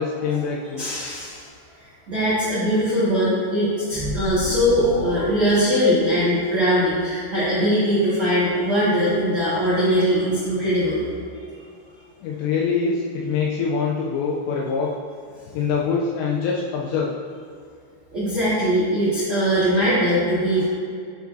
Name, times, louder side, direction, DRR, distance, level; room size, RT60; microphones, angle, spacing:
voice 1, 0.0-0.9 12.2-14.9 15.5-17.1, left 5 dB, 90° left, -3 dB, 2.5 m, -24 dB
voice 2, 0.8-1.5 1.8-11.0 18.1-20.6, equal, 80° right, -11 dB, 1.1 m, -21 dB
sound 1, 3.9-6.5, equal, 65° left, 2.0 m, -32 dB
11.5 x 4.8 x 2.7 m, 2.3 s
omnidirectional pair, 5.6 m